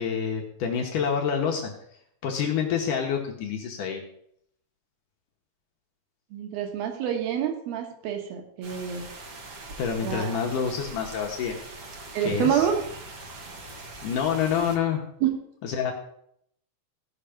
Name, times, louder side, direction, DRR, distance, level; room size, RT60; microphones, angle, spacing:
voice 1, 0.0-1.7 2.2-4.0 9.8-11.6 12.3-12.7 14.0-15.0 15.6-15.9, left 7 dB, 75° left, 1 dB, 2.0 m, -27 dB
voice 2, 6.3-9.0 10.0-10.4 12.1-12.8 15.2-15.4, right 9 dB, 65° right, 4 dB, 2.7 m, -27 dB
sound 1, 8.6-14.8, right 2 dB, 85° right, 1.3 m, -42 dB
16.0 x 5.8 x 5.1 m, 0.71 s
omnidirectional pair, 5.2 m